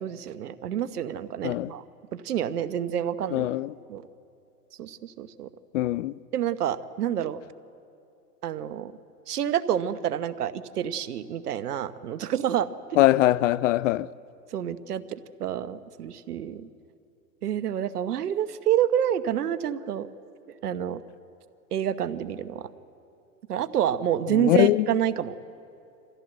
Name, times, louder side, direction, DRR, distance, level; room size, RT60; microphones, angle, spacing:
voice 1, 0.0-1.8 2.1-3.5 3.9-4.0 4.8-5.5 6.3-7.4 8.4-8.9 9.3-12.7 14.5-16.7 17.4-20.1 20.6-21.0 21.7-22.7 23.5-25.3, right 10 dB, 75° right, 1.1 m, -28 dB
voice 2, 3.3-3.7 5.7-6.1 13.0-14.1 24.3-24.9, left 15 dB, 55° left, 0.5 m, -22 dB
25.0 x 15.0 x 7.8 m
hypercardioid pair, 120°, 47 cm